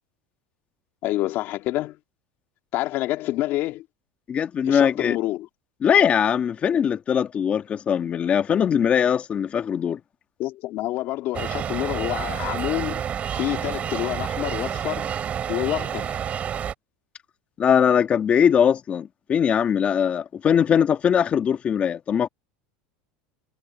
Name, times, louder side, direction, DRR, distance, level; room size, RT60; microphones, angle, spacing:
voice 1, 1.0-2.0 2.7-3.8 4.7-5.5 10.4-13.0 13.3-15.1 15.5-16.1, left 16 dB, 45° left, 2.7 m, -27 dB
voice 2, 4.3-5.2 5.8-10.0 17.6-22.3, left 8 dB, 25° left, 2.0 m, -21 dB
sound 1, 11.3-16.7, right 8 dB, 30° right, 4.8 m, -29 dB
supercardioid pair, 145°, 5 cm